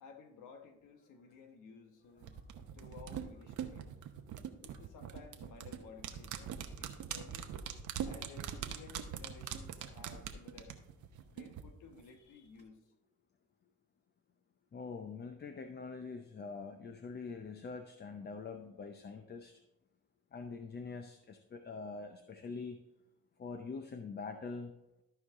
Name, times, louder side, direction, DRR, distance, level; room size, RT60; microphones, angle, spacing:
voice 1, 0.0-2.4 2.7-3.9 4.6-7.5 8.0-10.8 11.3-12.8, left 5 dB, 85° left, 5 dB, 1.4 m, -55 dB
sound 1, 2.2-11.6 11.9-12.0, right 9 dB, 75° right, 0.9 m, -42 dB
voice 2, 14.7-19.6 20.3-22.8 23.4-24.8, left 4 dB, 35° left, 7 dB, 0.7 m, -44 dB
13.5 x 4.8 x 3.7 m, 0.91 s
cardioid pair, 90°, 30 cm